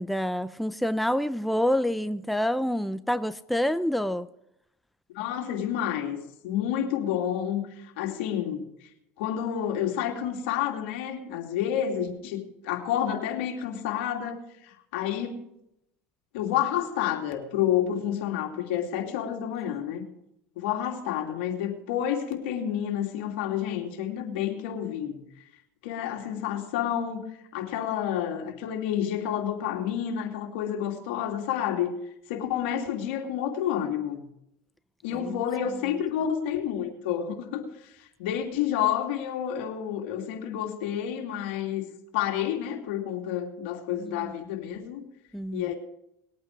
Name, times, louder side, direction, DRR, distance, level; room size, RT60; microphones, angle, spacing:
voice 1, 0.0-4.3 35.1-35.4 44.0-44.3 44.6-44.8 45.3-45.7, equal, ahead, 0.5 m, -28 dB
voice 2, 5.1-6.2 6.4-8.6 9.2-15.3 16.3-20.1 20.6-25.2 25.8-27.3 27.5-32.0 32.3-34.2 35.0-41.9 42.1-45.0 45.5-45.7, left 10 dB, 80° left, 2.7 m, -29 dB
20.5 x 8.7 x 4.7 m
supercardioid pair, 100°, 6 cm